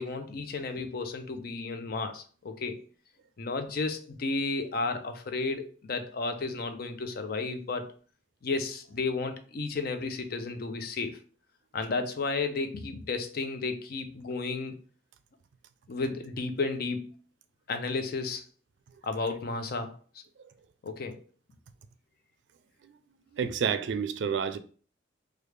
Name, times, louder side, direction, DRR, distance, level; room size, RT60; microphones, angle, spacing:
voice 1, 0.0-2.8 3.4-7.9 8.4-11.2 11.7-14.8 15.9-17.1 17.7-18.4 19.0-19.9 20.8-21.2, left 3 dB, 55° left, 0.5 m, -33 dB
voice 2, 23.3-24.6, right 7 dB, 85° right, 0.3 m, -29 dB
3.1 x 2.4 x 3.3 m
head